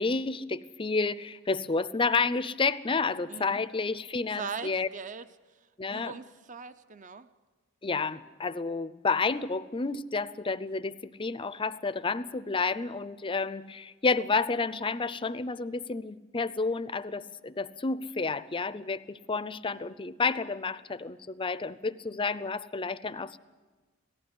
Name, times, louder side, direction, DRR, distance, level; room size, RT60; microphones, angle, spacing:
voice 1, 0.0-4.9 5.8-6.1 7.8-23.4, left 4 dB, 25° left, 15 dB, 0.5 m, -30 dB
voice 2, 3.3-3.6 4.3-5.3 5.9-7.3, right 5 dB, 35° right, 12 dB, 0.6 m, -40 dB
18.0 x 15.0 x 9.7 m, 1.3 s
head